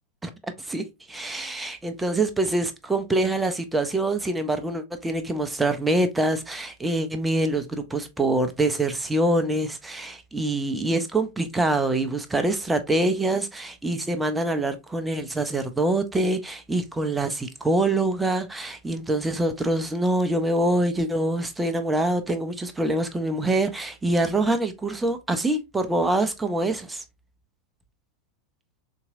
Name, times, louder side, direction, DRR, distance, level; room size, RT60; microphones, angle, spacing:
voice 1, 0.6-27.0, right 2 dB, 10° right, 0.5 m, -25 dB
3.8 x 2.8 x 2.5 m
figure-of-eight pair, 90°, 0 cm